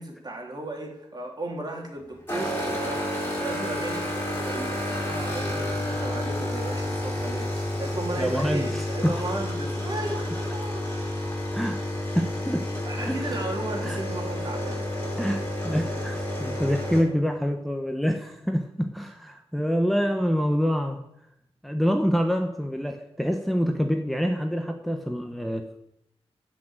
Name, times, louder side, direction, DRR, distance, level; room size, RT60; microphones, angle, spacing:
voice 1, 0.0-11.3 12.8-14.8 15.2-15.4, right 2 dB, 40° right, 1 dB, 3.5 m, -35 dB
sound 1, 2.3-17.0, left 1 dB, 20° left, 5.3 m, -30 dB
voice 2, 8.2-9.2 11.5-11.8 12.1-12.7 13.0-13.3 13.8-14.0 15.2-21.0 21.6-25.8, equal, ahead, 4 dB, 1.0 m, -26 dB
14.5 x 6.3 x 9.0 m, 0.82 s
wide cardioid pair, 115°, 11 cm